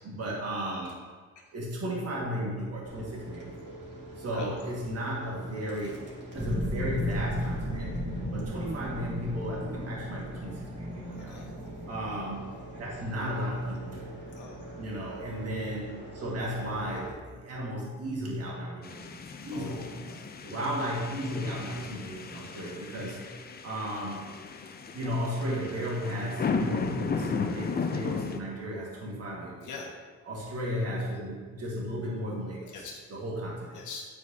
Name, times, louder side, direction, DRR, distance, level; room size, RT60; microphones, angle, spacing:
voice 1, 0.0-1.0 1.5-3.8 4.2-6.0 6.3-7.9 8.3-11.4 11.9-12.4 12.8-14.0 14.8-19.1 19.4-19.9 20.4-23.2 23.6-24.3 24.9-29.7 30.2-33.7, equal, 55° right, -4 dB, 1.8 m, -34 dB
sound 1, 2.8-17.1, right 1 dB, 35° right, 2.0 m, -44 dB
sound 2, 6.4-14.8, equal, 15° left, 1.9 m, -36 dB
voice 2, 14.3-14.7 19.0-19.1 19.5-20.6 29.6-29.9 32.7-33.0 33.7-34.0, left 4 dB, 75° left, -1 dB, 1.5 m, -43 dB
sound 3, 18.8-28.4, left 5 dB, 30° left, 0.5 m, -35 dB
10.5 x 4.5 x 2.8 m, 1.5 s
cardioid pair, 90°, 30 cm